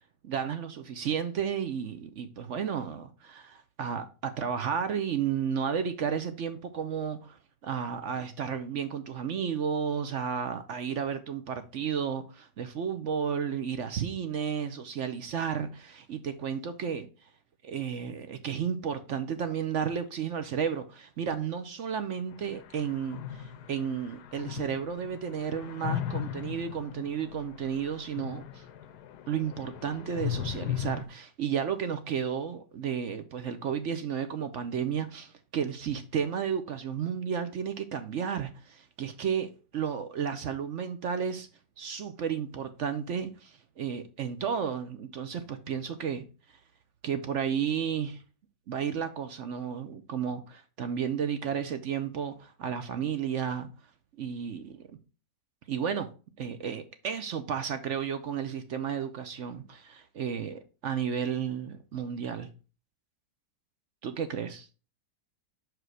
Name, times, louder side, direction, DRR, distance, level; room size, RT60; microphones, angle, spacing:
voice 1, 0.2-17.1 17.6-28.6 29.3-41.5 41.8-46.2 47.0-48.2 48.7-53.7 54.2-54.8 55.7-56.1 56.4-62.5 64.0-64.7, right 7 dB, 60° right, 0.8 m, -32 dB
sound 1, 22.3-31.0, left 10 dB, 70° left, 1.2 m, -37 dB
6.1 x 5.0 x 4.7 m
omnidirectional pair, 1.9 m